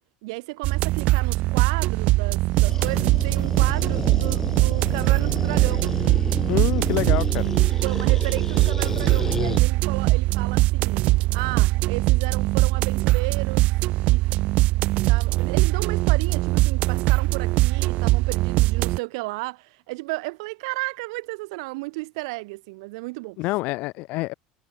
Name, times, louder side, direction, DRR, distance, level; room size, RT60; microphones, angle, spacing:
voice 1, 0.2-5.9 7.7-11.0 11.3-13.7 14.1-14.2 15.1-23.4, right 25 dB, 80° right, 6.6 m, -33 dB
sound 1, 0.6-19.0, right 19 dB, 50° right, 2.2 m, -21 dB
sound 2, 2.5-9.6, left 4 dB, 15° left, 3.2 m, -32 dB
voice 2, 6.5-7.5 23.4-24.3, left 22 dB, 50° left, 3.2 m, -27 dB
cardioid pair, 170°, 3 cm